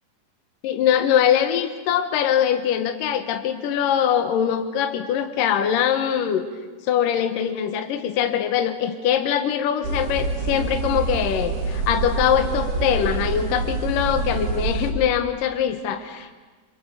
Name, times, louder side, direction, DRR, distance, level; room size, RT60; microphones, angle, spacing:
voice 1, 0.6-6.5 6.9-16.4, left 9 dB, 70° left, 6 dB, 2.7 m, -22 dB
sound 1, 9.8-14.9, right 4 dB, 85° right, 5.8 m, -26 dB
29.5 x 26.5 x 6.9 m, 1.3 s
omnidirectional pair, 4.3 m